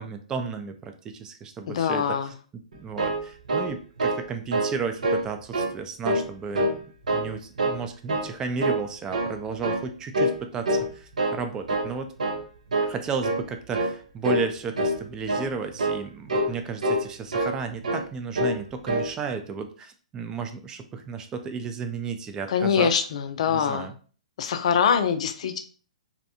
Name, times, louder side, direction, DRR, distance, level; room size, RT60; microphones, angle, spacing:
voice 1, 0.0-2.2 2.7-6.8 7.1-12.1 12.8-22.9 23.5-23.9, right 5 dB, 15° right, 6 dB, 0.3 m, -33 dB
voice 2, 1.7-2.3 22.5-23.9 24.4-25.6, left 7 dB, 60° left, 7 dB, 0.4 m, -24 dB
sound 1, 2.7-4.3 4.5-4.8 5.0-5.7 6.0-6.8 7.1-7.8 8.1-8.3 8.6-9.4 9.6-9.9 10.1-10.4 10.7-11.4 11.7-11.9 12.2-12.4 12.7-13.0 13.2-13.5 13.7-14.0 14.2-14.5 14.7-15.0 15.3-15.5 15.8-16.0 16.3-16.5 16.8-17.6 17.8-18.1 18.3-18.6 18.9-19.1, right 1 dB, 85° right, 0.5 m, -25 dB
2.6 x 2.1 x 2.7 m, 0.40 s
hypercardioid pair, 135°, 4 cm